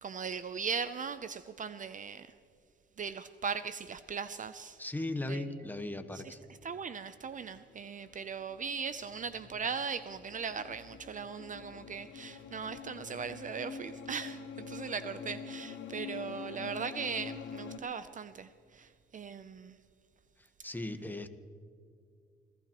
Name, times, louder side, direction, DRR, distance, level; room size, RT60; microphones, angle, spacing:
voice 1, 0.0-2.3 3.0-4.8 5.3-5.4 6.2-6.3 6.6-19.8, right 6 dB, 40° right, 12 dB, 0.5 m, -39 dB
voice 2, 4.8-6.4 20.4-21.3, left 2 dB, 10° left, 8 dB, 1.2 m, -38 dB
sound 1, 7.4-17.8, left 6 dB, 70° left, 1.0 m, -46 dB
29.0 x 15.0 x 3.0 m, 2.3 s
cardioid pair, 90°, 20 cm